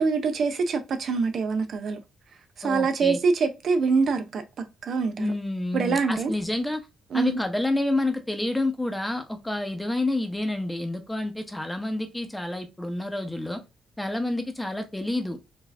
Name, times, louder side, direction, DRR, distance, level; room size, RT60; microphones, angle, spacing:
voice 1, 0.0-2.0 2.6-4.4 4.8-5.3 5.7-6.3 7.1-7.4, right 4 dB, 60° right, 0.6 m, -24 dB
voice 2, 2.6-3.2 5.2-6.8 7.1-13.6 14.0-15.4, left 2 dB, 5° left, 0.9 m, -28 dB
4.6 x 2.6 x 3.3 m
cardioid pair, 90°, 0 cm